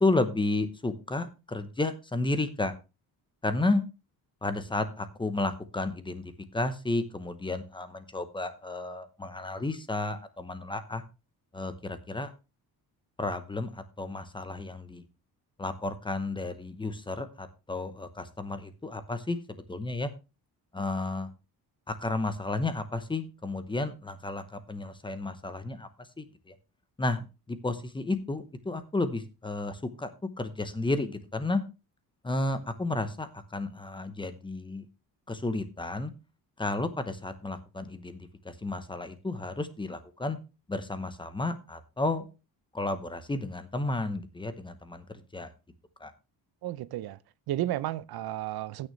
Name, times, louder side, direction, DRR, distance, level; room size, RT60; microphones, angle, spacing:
voice 1, 0.0-2.7 3.4-3.8 4.4-6.2 6.5-11.0 11.5-12.3 13.2-15.0 15.6-20.1 20.7-21.3 21.9-25.9 26.2-26.5 27.0-30.1 30.4-31.6 32.2-34.9 35.3-36.1 36.6-38.2 38.4-40.4 40.7-42.3 42.7-45.0 45.3-45.5 46.0-46.1, left 2 dB, 15° left, 0.9 m, -32 dB
voice 2, 46.6-47.2 47.5-48.9, right 14 dB, 75° right, 0.6 m, -32 dB
15.5 x 6.5 x 3.2 m
cardioid pair, 165°, 38 cm